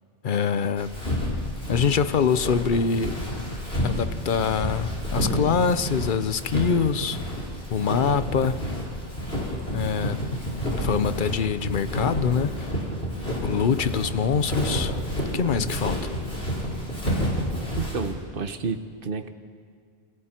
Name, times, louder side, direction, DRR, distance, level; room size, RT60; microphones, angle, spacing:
voice 1, 0.2-0.9 1.7-3.2 3.8-7.2 7.7-8.6 9.7-10.2 10.8-12.7 13.4-15.0 15.3-16.1, left 6 dB, 55° left, 13 dB, 0.9 m, -24 dB
Walk footsteps, 0.8-18.1, equal, 85° left, 5.7 m, -29 dB
voice 2, 17.8-19.3, right 5 dB, 60° right, 8 dB, 1.3 m, -30 dB
28.5 x 26.5 x 4.5 m, 2.1 s
omnidirectional pair, 1.0 m